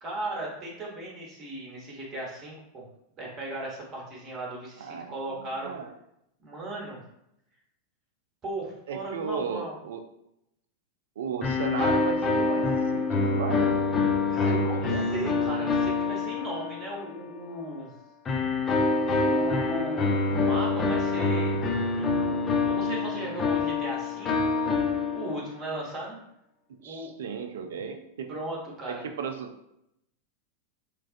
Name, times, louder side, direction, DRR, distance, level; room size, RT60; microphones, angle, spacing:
voice 1, 0.0-2.9 3.2-5.7 6.4-7.0 8.4-9.7 14.3-17.9 18.8-21.6 22.0-24.5 25.1-26.2 26.8-27.1 28.3-29.0, right 1 dB, 30° right, -3 dB, 1.0 m, -37 dB
voice 2, 4.8-5.9 8.9-10.0 11.2-13.8 14.5-15.2 26.8-28.3 28.9-29.5, right 6 dB, 60° right, 6 dB, 0.3 m, -35 dB
sound 1, 11.4-17.2 18.3-25.7, left 3 dB, 25° left, 0.4 m, -26 dB
3.2 x 2.3 x 2.5 m, 0.80 s
figure-of-eight pair, 90°, 0 cm